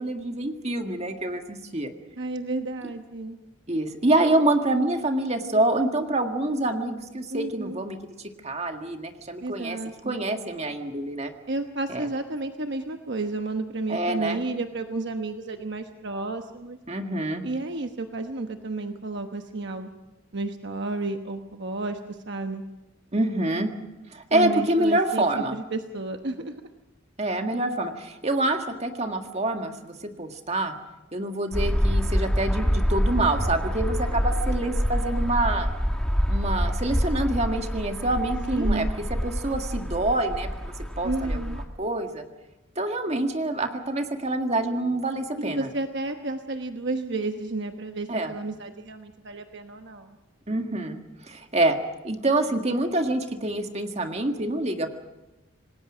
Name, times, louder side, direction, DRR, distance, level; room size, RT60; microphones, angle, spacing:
voice 1, 0.0-1.9 3.7-8.0 8.4-9.8 10.0-11.3 11.9-12.0 13.9-14.4 16.9-17.4 23.1-23.7 24.1-25.5 27.2-30.7 31.1-35.7 36.3-38.9 39.2-41.4 41.8-42.2 42.7-45.7 48.1-48.3 50.5-51.8 52.0-54.9, right 2 dB, 30° right, 5 dB, 1.7 m, -26 dB
voice 2, 2.2-3.4 7.3-7.8 9.4-10.2 11.5-16.8 17.4-19.9 20.3-22.6 24.3-26.5 38.5-38.9 41.0-41.6 45.4-50.2, right 2 dB, 55° right, 6 dB, 1.1 m, -32 dB
sound 1, 31.5-41.6, equal, 5° left, 1.9 m, -26 dB
27.0 x 19.5 x 6.2 m, 1.0 s
head